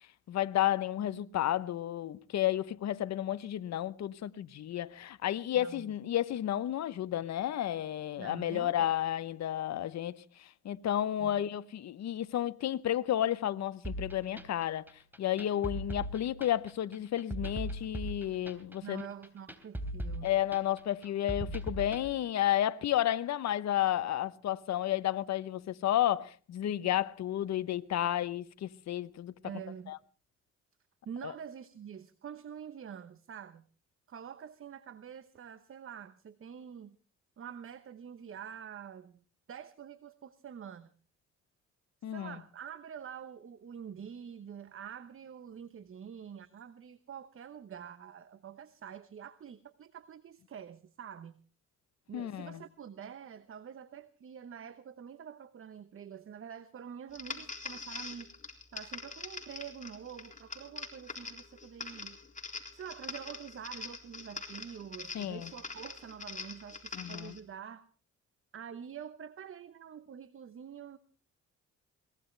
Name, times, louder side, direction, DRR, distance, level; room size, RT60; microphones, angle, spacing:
voice 1, 0.3-14.9 15.2-19.1 20.2-29.3 29.9-30.0 31.2-31.3 42.0-42.4 52.1-52.6 65.1-65.5 66.9-67.4, left 12 dB, 60° left, 0.9 m, -32 dB
voice 2, 8.2-8.9 11.2-11.4 18.8-20.3 21.4-21.6 29.4-29.9 31.0-33.6 34.1-37.0 37.4-39.2 39.5-40.9 42.0-51.4 52.1-58.3 58.7-62.2 62.7-67.8 68.5-71.0, right 8 dB, 45° right, 1.1 m, -46 dB
sound 1, 13.8-22.1, right 1 dB, 5° right, 3.4 m, -40 dB
sound 2, 57.1-67.4, left 4 dB, 25° left, 3.8 m, -44 dB
22.5 x 19.0 x 3.3 m
cardioid pair, 90°, 30 cm